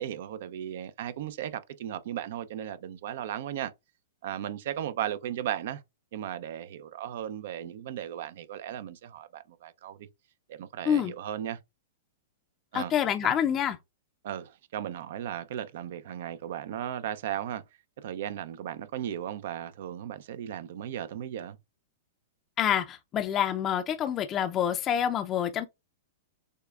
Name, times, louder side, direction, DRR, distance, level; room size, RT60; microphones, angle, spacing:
voice 1, 0.0-3.7 4.2-5.8 6.1-10.0 10.5-11.6 12.7-12.9 14.2-17.6 18.0-21.6, right 10 dB, 65° right, 0.6 m, -36 dB
voice 2, 12.7-13.8 22.6-25.7, left 9 dB, 30° left, 0.5 m, -27 dB
6.5 x 2.3 x 2.4 m
hypercardioid pair, 130°, 0 cm